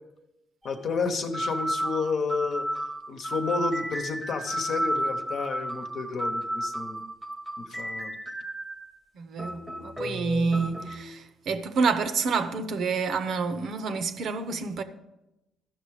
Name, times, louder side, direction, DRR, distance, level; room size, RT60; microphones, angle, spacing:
voice 1, 0.6-7.0 7.6-8.2, left 4 dB, 55° left, 1.0 m, -31 dB
sound 1, 0.6-0.8 1.3-8.9 9.4-11.0, right 1 dB, 5° right, 0.9 m, -32 dB
voice 2, 9.1-14.8, right 4 dB, 60° right, 0.7 m, -28 dB
13.0 x 6.0 x 4.9 m
cardioid pair, 100°, 0 cm